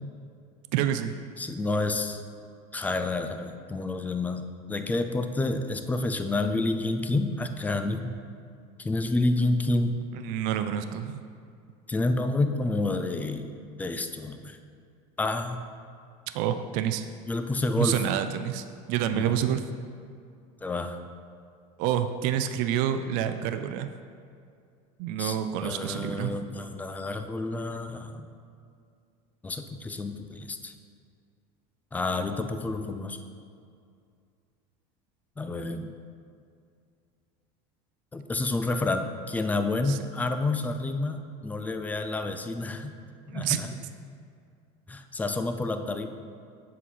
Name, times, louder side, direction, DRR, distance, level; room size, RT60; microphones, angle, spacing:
voice 1, 0.7-1.2 10.1-11.2 16.3-17.1 17.8-19.6 21.8-23.9 25.0-26.4 39.9-40.0 43.3-43.6, right 10 dB, 60° right, 9 dB, 0.4 m, -28 dB
voice 2, 1.4-2.2 2.7-8.1 8.8-10.0 11.9-13.5 13.8-14.6 15.2-15.6 17.3-18.1 19.1-19.4 20.6-21.0 25.2-28.3 29.4-30.7 31.9-33.2 35.4-35.9 38.1-43.0 43.3-43.7 44.9-46.1, left 2 dB, 10° left, 7 dB, 0.3 m, -29 dB
7.3 x 4.1 x 5.7 m, 2.3 s
supercardioid pair, 140°, 15 cm